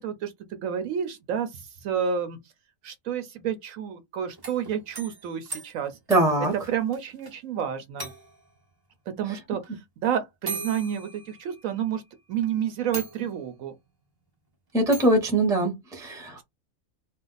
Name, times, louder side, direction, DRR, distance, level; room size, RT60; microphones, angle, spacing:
voice 1, 0.0-2.4 2.8-6.0 6.4-8.1 9.2-12.0 12.3-13.7, right 8 dB, 70° right, 1.0 m, -30 dB
sound 1, 4.3-7.3 7.6-7.7 8.0-8.6 9.6-9.7 10.5-11.9 12.4-12.5 12.9-13.6 14.9-15.2, right 4 dB, 35° right, 0.3 m, -39 dB
voice 2, 6.1-6.5 14.7-16.4, right 1 dB, 5° right, 0.7 m, -22 dB
2.5 x 2.2 x 3.9 m
omnidirectional pair, 1.5 m